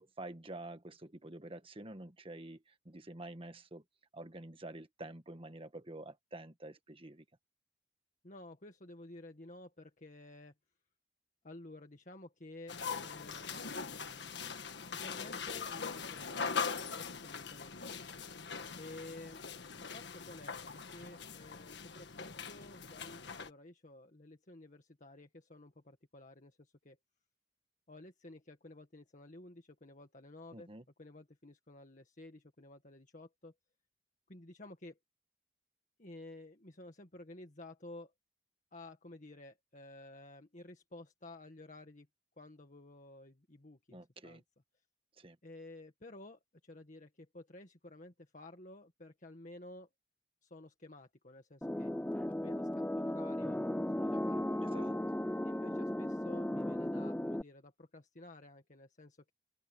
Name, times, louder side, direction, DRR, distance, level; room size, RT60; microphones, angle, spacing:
voice 1, 0.0-3.8 4.1-7.2 30.5-30.8 43.9-44.4 45.2-45.4 54.6-54.9, right 2 dB, 30° right, 1.5 m, -48 dB
voice 2, 8.2-10.5 11.4-14.4 14.8-16.5 16.8-18.0 18.7-19.4 19.8-27.0 27.9-30.7 31.0-33.5 34.3-35.0 36.0-38.1 38.7-42.1 42.4-44.4 45.4-49.9 50.4-51.9 52.3-53.6 53.9-55.0 55.4-59.3, left 2 dB, 40° left, 1.9 m, -53 dB
sound 1, 12.7-23.5, left 5 dB, 65° left, 1.6 m, -41 dB
sound 2, 51.6-57.4, left 1 dB, 10° left, 0.5 m, -36 dB
open air
head